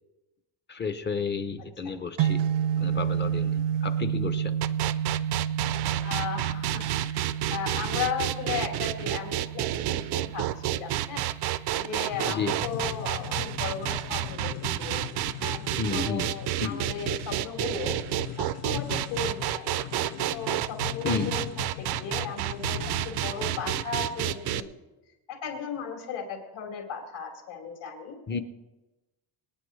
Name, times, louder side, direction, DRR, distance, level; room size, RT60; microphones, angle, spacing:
voice 1, 0.7-2.4 2.8-4.6 12.3-12.5 15.8-16.3 16.6-16.9 21.0-21.4 28.3-28.4, left 5 dB, 25° left, 9 dB, 0.6 m, -32 dB
sound 1, 2.2-14.3, right 9 dB, 80° right, 0.8 m, -31 dB
sound 2, 4.6-24.6, right 14 dB, 55° right, 0.5 m, -30 dB
voice 2, 6.0-7.2 7.5-10.4 10.7-11.3 11.8-15.1 15.4-15.6 15.9-17.9 18.4-19.9 20.3-21.5 21.8-24.7 25.3-28.2, left 6 dB, 70° left, 0 dB, 4.2 m, -36 dB
sound 3, 12.1-24.6, left 14 dB, 90° left, 0.7 m, -40 dB
27.0 x 9.4 x 3.2 m, 1.1 s
cardioid pair, 160°, 49 cm